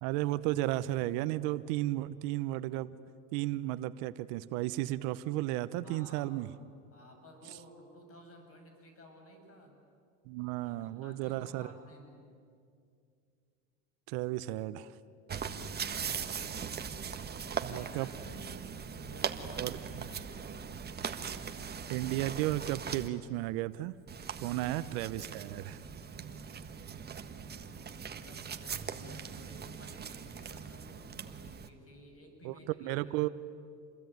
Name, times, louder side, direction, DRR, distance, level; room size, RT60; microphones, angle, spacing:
voice 1, 0.0-2.9 3.3-6.5 10.3-11.7 14.1-14.9 17.6-18.1 19.6-20.1 21.9-23.9 24.4-25.8 32.4-32.5 32.8-33.3, right 16 dB, 65° right, 15 dB, 0.9 m, -34 dB
voice 2, 5.8-6.4 6.9-9.8 10.6-12.3 15.4-16.5 17.3-20.7 24.3-25.2 25.9-26.5 27.4-27.8 28.1-33.3, equal, 35° left, 4 dB, 7.6 m, -55 dB
sound 1, 15.3-23.1 24.1-31.7, right 6 dB, 25° right, 1.5 m, -40 dB
28.0 x 21.5 x 9.5 m, 2.3 s
supercardioid pair, 110°, 42 cm